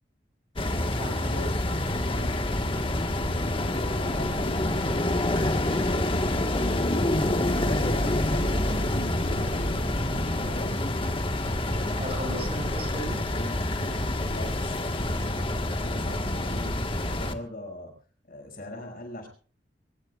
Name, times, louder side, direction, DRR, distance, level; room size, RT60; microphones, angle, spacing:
sound 1, 0.6-17.3, left 1 dB, 30° left, 1.5 m, -27 dB
voice 1, 1.0-1.6 4.0-4.2 12.0-13.2, right 1 dB, 35° right, 3 dB, 6.6 m, -36 dB
voice 2, 2.1-2.8 3.5-5.7 6.3-10.8 11.6-11.9 13.3-17.9 18.3-19.3, left 1 dB, 50° left, 2 dB, 6.6 m, -40 dB
23.0 x 21.0 x 2.5 m, 0.42 s
head